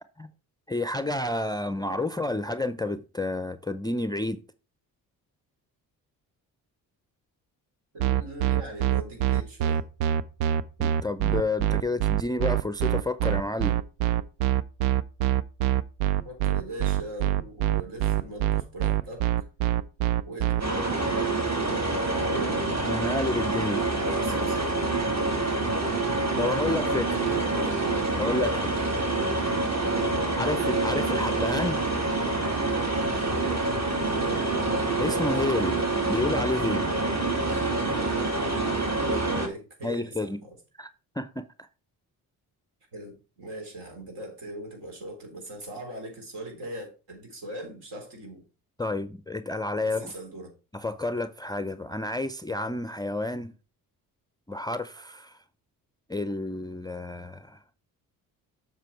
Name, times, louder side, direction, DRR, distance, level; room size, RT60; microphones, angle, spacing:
voice 1, 0.7-4.4 10.8-13.8 22.8-23.9 26.4-27.2 28.2-28.8 30.3-31.8 35.0-36.9 37.5-37.7 39.8-40.4 40.8-40.9 41.2-41.7 48.8-50.1 50.7-53.5 54.5-55.4 56.1-57.6, left 2 dB, 10° left, 0.5 m, -30 dB
voice 2, 7.9-9.8 16.2-19.3 20.3-22.6 23.9-25.0 27.0-28.2 34.5-34.9 36.9-37.0 39.0-40.5 42.9-48.4 49.8-50.5, right 1 dB, 65° right, 3.8 m, -40 dB
sound 1, 8.0-20.6, right 11 dB, 85° right, 0.5 m, -24 dB
sound 2, 20.6-39.5, right 2 dB, 35° right, 2.6 m, -26 dB
7.5 x 5.6 x 4.5 m
hypercardioid pair, 50°, 45 cm